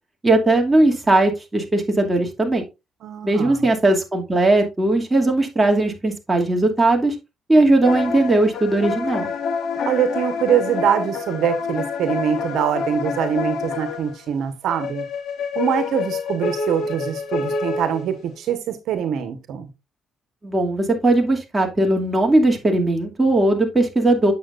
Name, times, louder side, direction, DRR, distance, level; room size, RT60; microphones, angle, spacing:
voice 1, 0.2-2.6 3.2-7.1 7.5-9.3 20.4-24.3, right 2 dB, 15° right, 2 dB, 2.5 m, -18 dB
voice 2, 3.0-3.7 9.8-15.0 15.5-19.7, right 8 dB, 80° right, 9 dB, 1.2 m, -23 dB
sound 1, 7.8-14.2 14.7-18.2, left 5 dB, 70° left, 1.5 m, -27 dB
8.5 x 7.1 x 2.5 m, 0.24 s
cardioid pair, 90°, 0 cm